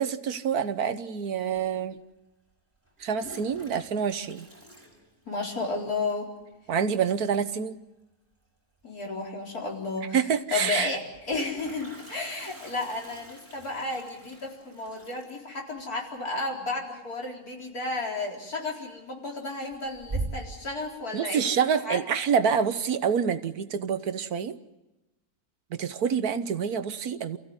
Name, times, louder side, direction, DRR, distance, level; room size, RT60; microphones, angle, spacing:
voice 1, 0.0-2.0 3.0-4.5 6.7-7.8 10.1-11.0 21.1-24.6 25.7-27.4, right 7 dB, 90° right, 11 dB, 1.6 m, -27 dB
Toilet flush, 1.6-1.7 2.8-5.7 5.9-6.0 6.3-6.4 6.7-7.1 8.8-8.9 9.2-9.3 10.9-17.6 17.9-18.3 18.7-19.3 19.7-20.7, right 2 dB, 35° right, 6.0 m, -42 dB
voice 2, 5.3-6.3 8.8-10.2 10.5-21.6 21.8-22.0, left 3 dB, 80° left, -1 dB, 4.7 m, -33 dB
28.5 x 15.5 x 9.7 m, 1.0 s
omnidirectional pair, 1.6 m